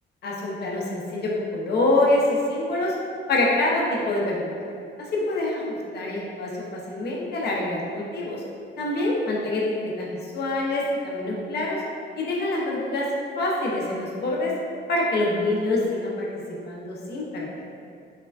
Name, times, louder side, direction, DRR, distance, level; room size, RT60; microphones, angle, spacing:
voice 1, 0.2-3.0 3.3-4.7 5.1-8.4 8.8-10.1 10.3-11.8 12.2-13.1 13.4-14.5 14.9-16.3 16.7-17.6, left 2 dB, 55° left, -3 dB, 0.5 m, -25 dB
3.2 x 2.1 x 2.3 m, 2.4 s
cardioid pair, 135°, 20 cm